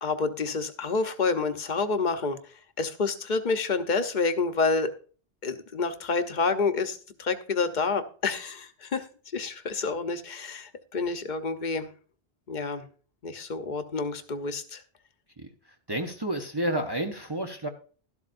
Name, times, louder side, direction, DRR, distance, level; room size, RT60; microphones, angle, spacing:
voice 1, 0.0-2.4 2.8-4.9 5.4-9.1 9.3-11.9 12.5-12.8 13.2-14.8, left 4 dB, 45° left, 8 dB, 1.0 m, -28 dB
voice 2, 15.9-17.7, right 1 dB, 25° right, 3 dB, 0.8 m, -30 dB
12.5 x 12.0 x 2.6 m, 0.39 s
omnidirectional pair, 1.1 m